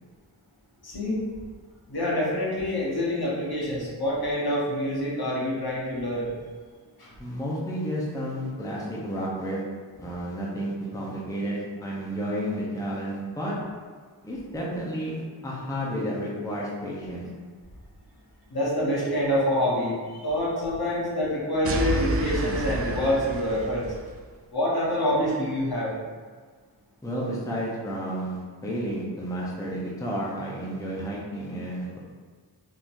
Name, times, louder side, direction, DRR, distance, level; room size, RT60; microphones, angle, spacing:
voice 1, 0.8-1.2 1.9-6.3 7.0-7.1 18.5-23.8 24.5-25.9, left 1 dB, 55° left, -6 dB, 1.2 m, -26 dB
voice 2, 7.2-9.6 10.0-13.5 14.2-17.3 27.0-32.0, equal, 10° left, -5 dB, 0.8 m, -31 dB
sound 1, 21.6-24.2, right 1 dB, 35° right, 0.4 m, -30 dB
3.8 x 2.8 x 2.6 m, 1.5 s
cardioid pair, 40°, 45 cm